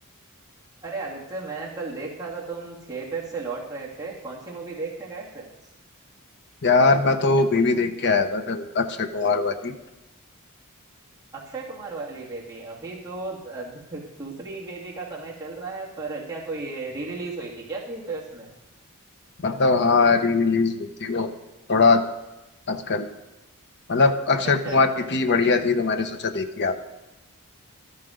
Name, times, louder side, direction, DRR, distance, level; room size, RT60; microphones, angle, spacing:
voice 1, 0.8-5.5 11.3-18.5 24.6-25.1, right 3 dB, 15° right, -5 dB, 2.3 m, -35 dB
voice 2, 6.6-9.7 19.4-21.3 21.7-22.0 22.7-23.1 23.9-26.8, left 4 dB, 55° left, 8 dB, 0.9 m, -21 dB
13.0 x 9.6 x 5.1 m, 1.0 s
head